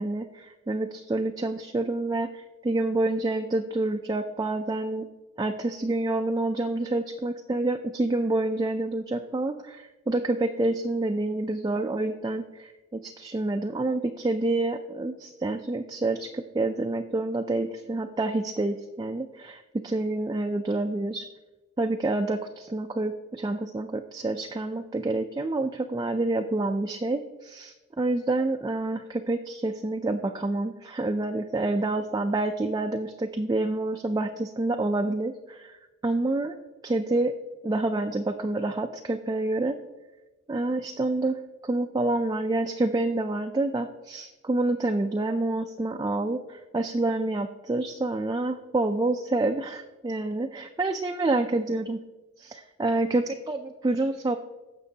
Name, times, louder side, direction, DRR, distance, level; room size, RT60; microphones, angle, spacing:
voice 1, 0.0-5.1 5.4-21.3 21.8-35.8 36.0-36.5 36.8-37.3 37.6-39.8 40.5-52.0 52.4-54.4, right 2 dB, 20° right, 5 dB, 0.3 m, -28 dB
15.5 x 6.1 x 2.8 m, 1.1 s
head